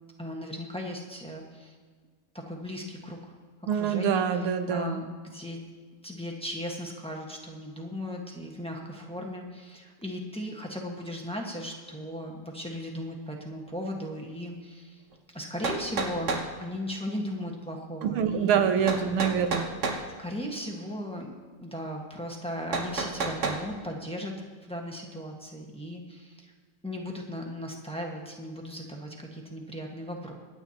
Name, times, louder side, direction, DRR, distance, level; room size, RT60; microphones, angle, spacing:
voice 1, 0.2-1.7 2.5-3.2 3.7-5.6 6.0-15.0 15.3-18.6 20.2-21.3 21.6-24.3 24.7-26.5 26.8-30.3, equal, 5° left, 0 dB, 1.0 m, -37 dB
voice 2, 3.7-5.0 18.0-19.8, right 7 dB, 80° right, 9 dB, 1.7 m, -26 dB
sound 1, 15.1-15.2 15.6-16.5 18.9-20.0 22.7-23.6, right 3 dB, 45° right, 1.1 m, -30 dB
25.5 x 9.2 x 2.9 m, 1.5 s
omnidirectional pair, 2.3 m